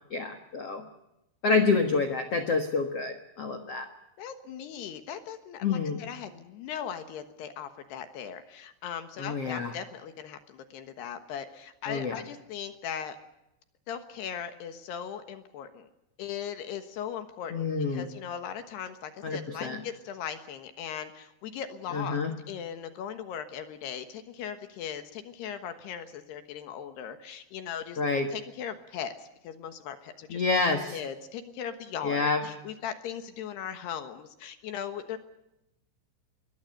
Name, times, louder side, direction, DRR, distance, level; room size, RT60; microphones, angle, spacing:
voice 1, 0.1-0.8 1.4-3.9 5.6-6.0 9.2-9.8 11.9-12.2 17.5-18.1 19.2-19.8 21.9-22.3 28.0-28.3 30.3-31.0 32.0-32.4, left 4 dB, 90° left, 6 dB, 1.3 m, -28 dB
voice 2, 4.2-13.2 13.9-15.9 16.2-22.2 22.5-28.0 28.3-30.4 30.9-35.2, left 8 dB, 70° left, 9 dB, 3.1 m, -39 dB
26.0 x 22.0 x 6.7 m, 0.89 s
omnidirectional pair, 5.5 m